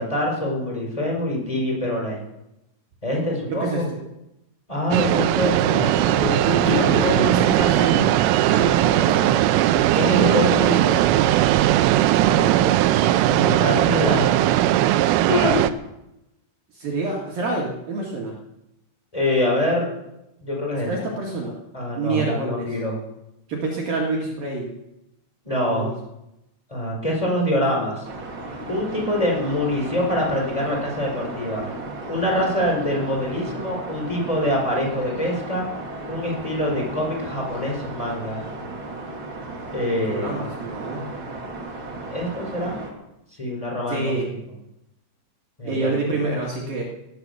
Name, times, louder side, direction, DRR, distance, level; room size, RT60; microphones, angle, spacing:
voice 1, 0.0-2.2 3.0-3.9 4.7-7.3 9.6-10.6 13.2-14.4 15.3-15.6 19.1-19.9 20.4-20.9 21.7-23.0 25.4-25.9 26.7-28.1 28.7-31.7 32.1-35.7 36.1-38.4 39.7-40.3 42.1-42.8 43.4-44.3 45.6-45.9, left 1 dB, 5° left, -1 dB, 4.5 m, -25 dB
voice 2, 3.5-4.0 5.1-5.9 6.4-8.1 8.5-9.3 10.1-11.1 12.2-12.8 16.7-18.4 20.8-21.6 22.0-22.7 23.5-24.7 25.6-25.9 40.0-41.0 43.9-44.3 45.6-46.8, right 3 dB, 55° right, -2 dB, 3.3 m, -27 dB
sound 1, 4.9-15.7, right 13 dB, 85° right, 3.2 m, -19 dB
sound 2, 28.0-42.9, right 2 dB, 35° right, 2.3 m, -35 dB
17.5 x 11.0 x 6.7 m, 0.89 s
omnidirectional pair, 5.6 m